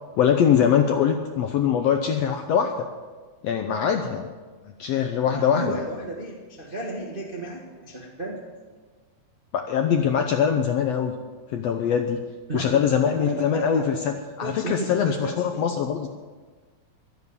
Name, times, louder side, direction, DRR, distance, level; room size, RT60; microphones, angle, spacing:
voice 1, 0.2-2.9 3.4-4.3 4.8-5.8 9.5-11.1 11.5-12.2 12.5-16.1, left 8 dB, 75° left, 5 dB, 1.6 m, -23 dB
voice 2, 5.3-8.4 12.5-13.9 14.4-15.8, right 1 dB, 35° right, -1 dB, 0.8 m, -34 dB
12.5 x 10.5 x 8.3 m, 1.4 s
omnidirectional pair, 3.7 m